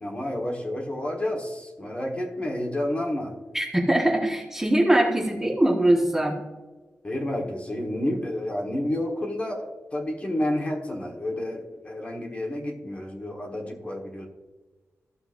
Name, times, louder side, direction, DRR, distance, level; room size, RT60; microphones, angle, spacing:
voice 1, 0.0-3.4 7.0-14.3, left 1 dB, 25° left, 0 dB, 1.3 m, -30 dB
voice 2, 3.5-6.4, right 1 dB, 10° right, -1 dB, 1.2 m, -22 dB
14.5 x 6.8 x 2.6 m, 1.2 s
wide cardioid pair, 170°, 5 cm